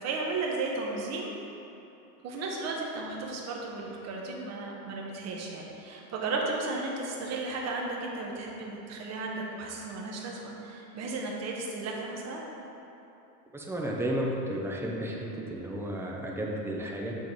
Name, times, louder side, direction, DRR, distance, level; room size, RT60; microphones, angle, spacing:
voice 1, 0.0-1.3 2.2-12.4, right 3 dB, 35° right, -1 dB, 1.1 m, -34 dB
voice 2, 13.5-17.2, right 1 dB, 5° right, -2 dB, 0.7 m, -33 dB
7.3 x 4.0 x 4.6 m, 2.9 s
supercardioid pair, 120°, 45 cm